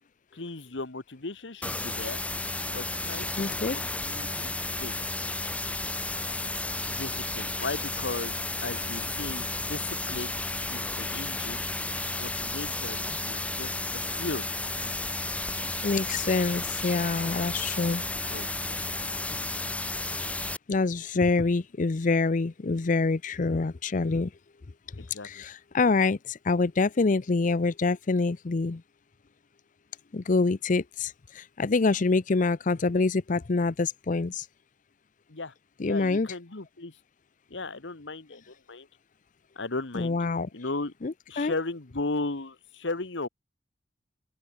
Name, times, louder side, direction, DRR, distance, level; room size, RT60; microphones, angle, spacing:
voice 1, 0.3-2.2 2.7-4.9 6.8-10.3 10.7-11.6 12.2-14.5 18.3-18.5 25.1-25.4 35.3-35.5 35.8-37.0 37.5-38.9 39.5-40.2 40.5-40.9 41.3-43.3, left 3 dB, 80° left, 1.4 m, -36 dB
sound 1, 1.6-20.6, left 2 dB, 10° left, 1.0 m, -32 dB
voice 2, 3.4-3.8 15.8-18.0 20.7-24.3 25.2-28.8 30.1-34.5 35.8-36.3 40.0-40.5 41.0-41.5, left 3 dB, 45° left, 0.6 m, -26 dB
open air
head